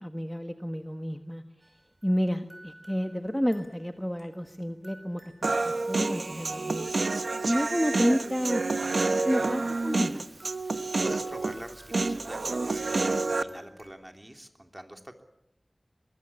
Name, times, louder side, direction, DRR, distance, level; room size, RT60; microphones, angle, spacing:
voice 1, 0.0-1.4 2.0-6.9 7.4-10.2, equal, 5° left, 6 dB, 1.4 m, -30 dB
sound 1, 1.6-13.9, right 1 dB, 30° right, 5.6 m, -55 dB
Human voice, 5.4-13.4, right 3 dB, 90° right, 1.1 m, -28 dB
voice 2, 10.6-15.2, right 1 dB, 15° right, 5 dB, 3.1 m, -44 dB
23.5 x 21.0 x 8.7 m, 0.84 s
wide cardioid pair, 65°, 0 cm